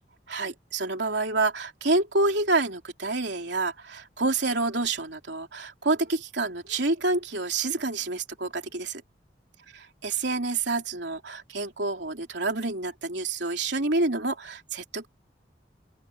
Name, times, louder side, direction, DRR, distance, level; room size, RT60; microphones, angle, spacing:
voice 1, 0.3-9.0 9.7-15.1, right 3 dB, 75° right, 3.1 m, -28 dB
open air
head